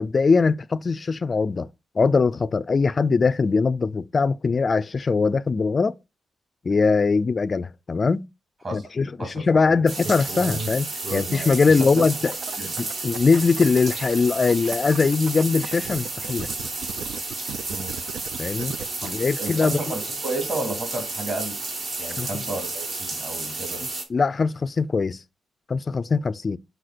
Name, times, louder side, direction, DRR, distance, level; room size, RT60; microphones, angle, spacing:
voice 1, 0.0-1.7 2.0-5.9 6.6-8.3 8.7-12.3 12.8-16.5 18.4-18.7 19.0-19.8 22.2-22.3 24.1-25.2 25.7-26.6, left 4 dB, 35° left, 0.4 m, -21 dB
voice 2, 9.2-9.8 11.7-12.1 12.6-12.7 17.7-17.9 19.0-21.6 22.0-23.8, right 2 dB, 35° right, 3.4 m, -32 dB
sound 1, 9.9-24.0, right 3 dB, 55° right, 2.5 m, -32 dB
sound 2, 12.3-14.1 14.5-19.1, right 7 dB, 75° right, 0.6 m, -36 dB
6.5 x 4.7 x 4.2 m
cardioid pair, 115°, 0 cm